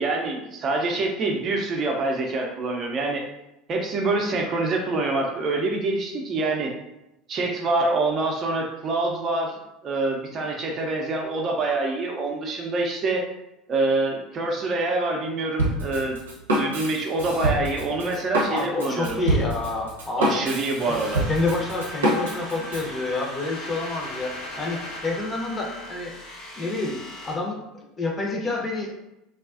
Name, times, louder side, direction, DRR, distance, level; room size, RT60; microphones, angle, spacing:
voice 1, 0.0-3.2 3.7-6.7 7.3-13.3 13.7-16.2 16.5-19.2 20.2-21.3, right 2 dB, 40° right, 1 dB, 0.5 m, -26 dB
Drum kit, 15.6-22.9, right 1 dB, 85° right, 0.6 m, -26 dB
voice 2, 18.5-20.4 20.9-21.0 21.3-26.1 26.6-29.0, left 2 dB, 25° left, -1 dB, 0.7 m, -28 dB
sound 1, 20.8-27.3, left 1 dB, 60° left, 0.9 m, -38 dB
2.3 x 2.3 x 2.4 m, 0.89 s
hypercardioid pair, 70°, 0 cm